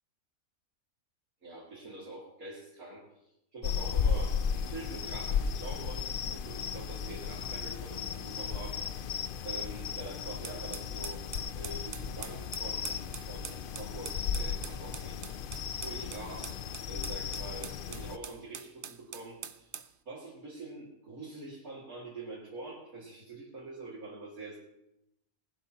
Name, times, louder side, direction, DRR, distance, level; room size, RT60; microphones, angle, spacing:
voice 1, 1.4-3.1 3.5-8.8 9.4-11.3 11.5-16.6 16.9-19.7 20.1-24.6, right 2 dB, 75° right, -6 dB, 2.8 m, -45 dB
sound 1, 3.6-18.2, left 7 dB, 70° left, 0.5 m, -35 dB
sound 2, 10.4-19.9, right 8 dB, 55° right, 0.6 m, -44 dB
19.5 x 11.5 x 2.9 m, 0.83 s
omnidirectional pair, 1.5 m